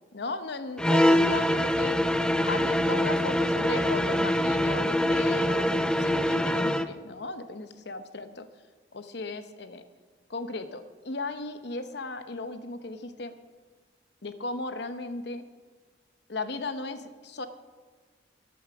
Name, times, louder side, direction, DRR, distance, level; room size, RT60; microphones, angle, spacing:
voice 1, 0.1-2.0 2.4-8.5 8.9-9.8 10.3-13.4 14.2-15.4 16.3-17.5, left 3 dB, 60° left, 10 dB, 0.9 m, -36 dB
sound 1, 0.8-6.9, equal, 5° left, 0.4 m, -24 dB
14.0 x 10.5 x 5.8 m, 1.4 s
head